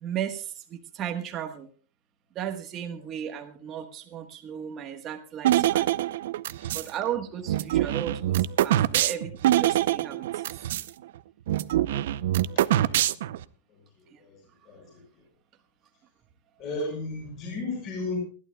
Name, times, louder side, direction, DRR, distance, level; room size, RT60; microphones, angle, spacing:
voice 1, 0.0-1.7 2.3-5.9 6.7-10.3 14.1-14.2, right 9 dB, 20° right, 4 dB, 1.3 m, -35 dB
sound 1, 5.4-6.9 7.5-10.9 11.2-11.3 11.5-13.4, right 13 dB, 60° right, 0.6 m, -24 dB
voice 2, 12.5-13.1 14.2-14.4 14.6-15.0 16.6-18.2, left 2 dB, 25° left, 0 dB, 6.5 m, -34 dB
28.5 x 12.0 x 2.3 m, 0.37 s
supercardioid pair, 180°, 0 cm